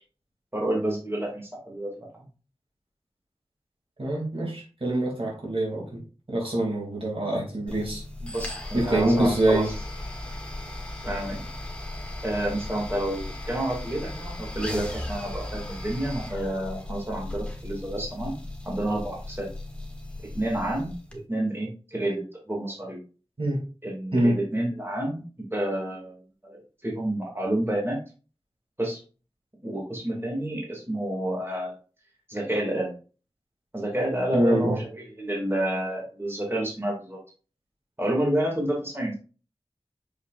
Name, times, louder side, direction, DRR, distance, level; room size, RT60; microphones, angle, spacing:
voice 1, 0.5-2.2 8.2-9.9 11.0-11.4 12.2-18.4 18.6-19.5 20.3-23.0 23.8-26.2 26.4-28.0 28.8-29.0 29.6-31.7 32.3-32.9 33.7-37.2 38.0-39.1, right 1 dB, 20° right, -2 dB, 2.6 m, -29 dB
voice 2, 4.0-6.0 6.3-8.0 8.7-9.7 23.4-23.6 24.1-24.3 34.3-34.8, right 1 dB, 60° right, -3 dB, 3.0 m, -25 dB
sound 1, 7.7-21.2, left 1 dB, 10° left, 1.4 m, -37 dB
6.5 x 5.8 x 2.6 m, 0.36 s
wide cardioid pair, 50°, 11 cm